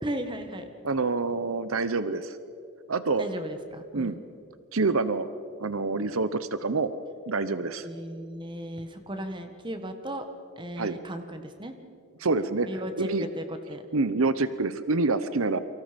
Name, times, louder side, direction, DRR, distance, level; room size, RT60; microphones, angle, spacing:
voice 1, 0.0-0.7 3.2-4.2 7.8-10.2 10.6-11.7 12.7-13.8, right 1 dB, 20° right, 7 dB, 1.6 m, -36 dB
voice 2, 0.8-2.4 2.9-3.2 3.9-4.2 4.7-5.3 5.6-6.9 7.3-7.9 10.8-11.0 12.2-12.7 13.0-13.2 13.9-15.6, right 3 dB, 75° right, 12 dB, 0.9 m, -26 dB
29.0 x 24.5 x 5.3 m, 2.5 s
head